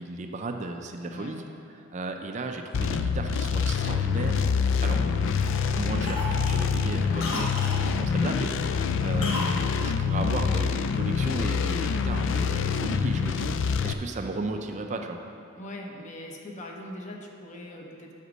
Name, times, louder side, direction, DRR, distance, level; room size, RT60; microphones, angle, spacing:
voice 1, 0.0-1.4 1.7-4.5 4.8-5.3 5.7-7.5 7.9-15.2, right 2 dB, 35° right, 5 dB, 0.4 m, -35 dB
sound 1, 2.7-13.9, left 6 dB, 65° left, 0.4 m, -26 dB
Cough, 3.8-5.1 5.4-5.7 6.0-7.8 9.2-9.6 9.8-9.9, left 1 dB, 80° left, 1.1 m, -35 dB
voice 2, 7.0-7.4 15.5-18.1, left 1 dB, 35° left, 0 dB, 1.0 m, -41 dB
8.1 x 5.1 x 6.2 m, 2.5 s
head